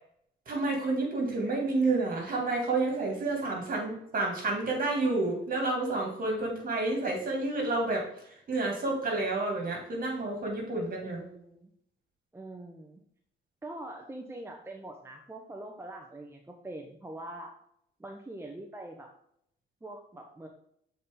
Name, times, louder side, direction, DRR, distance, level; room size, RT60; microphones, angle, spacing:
voice 1, 0.5-8.1 8.5-11.2, right 2 dB, 45° right, 1 dB, 2.4 m, -29 dB
voice 2, 11.0-11.7 12.3-13.0 13.6-17.5 18.0-19.1 19.8-20.5, right 1 dB, 10° right, 2 dB, 0.8 m, -43 dB
7.4 x 4.2 x 3.8 m, 0.71 s
cardioid pair, 90°, 20 cm